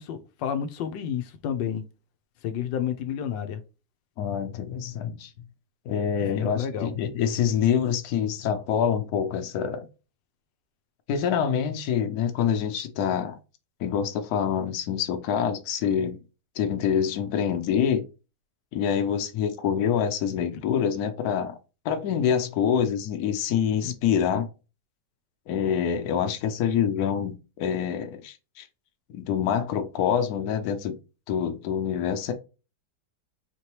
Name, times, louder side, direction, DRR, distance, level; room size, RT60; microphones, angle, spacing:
voice 1, 0.0-1.8 2.4-3.6 6.2-6.9 23.8-23.9, left 8 dB, 85° left, 1.3 m, -30 dB
voice 2, 4.2-5.3 5.9-9.9 11.1-13.4 13.8-16.2 16.6-18.0 18.7-21.6 21.8-24.5 25.5-28.7 29.1-30.9 31.3-32.3, left 8 dB, 65° left, 1.1 m, -26 dB
4.4 x 2.8 x 3.1 m
omnidirectional pair, 1.9 m